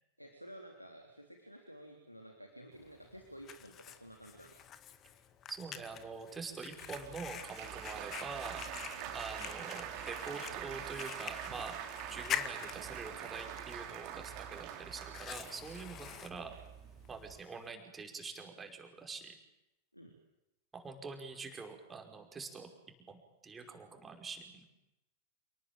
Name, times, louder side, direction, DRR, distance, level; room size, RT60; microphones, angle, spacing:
voice 1, 0.2-4.5 8.9-9.1 19.9-20.1, equal, 90° left, 3 dB, 3.3 m, -52 dB
Fire, 2.7-17.7, left 9 dB, 30° left, 1.9 m, -46 dB
voice 2, 5.5-8.6 9.1-11.8 12.1-16.6 17.1-19.3 20.7-22.7 23.1-24.6, right 4 dB, 15° right, 4 dB, 5.4 m, -45 dB
Applause, 6.8-17.4, right 9 dB, 40° right, 3.6 m, -45 dB
29.0 x 19.0 x 9.0 m, 0.90 s
figure-of-eight pair, 90°, 0 cm